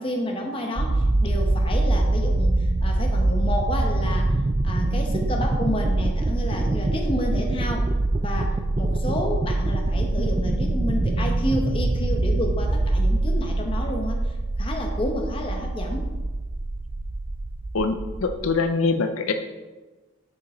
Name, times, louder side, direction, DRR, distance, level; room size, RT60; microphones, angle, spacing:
voice 1, 0.0-4.3 4.6-7.8 8.2-14.2 14.6-16.1, left 1 dB, 25° left, 2 dB, 0.9 m, -30 dB
sound 1, 0.8-18.5, right 2 dB, 25° right, 0.4 m, -24 dB
voice 2, 18.2-19.3, left 4 dB, 80° left, 7 dB, 0.6 m, -23 dB
6.7 x 6.3 x 4.4 m, 1.2 s
head